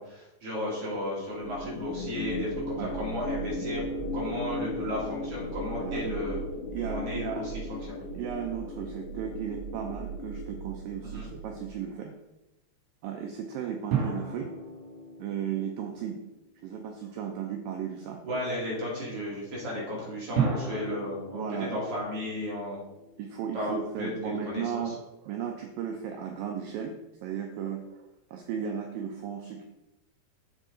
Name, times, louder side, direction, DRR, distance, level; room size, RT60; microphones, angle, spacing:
voice 1, 0.0-3.8 4.1-6.4 6.8-7.8 11.0-11.3 18.3-22.9 23.5-24.9, left 1 dB, 40° right, -5 dB, 2.6 m, -34 dB
sound 1, 1.4-11.8, equal, 80° left, 3.1 m, -36 dB
voice 2, 6.7-7.5 8.2-12.1 13.0-14.5 15.2-16.2 16.6-18.2 21.3-21.7 23.2-28.0 28.3-29.6, right 8 dB, 85° right, 3 dB, 2.0 m, -35 dB
sound 2, 13.9-16.7 20.4-23.7, right 5 dB, 60° right, 3.7 m, -34 dB
7.4 x 7.4 x 3.9 m, 0.96 s
omnidirectional pair, 4.9 m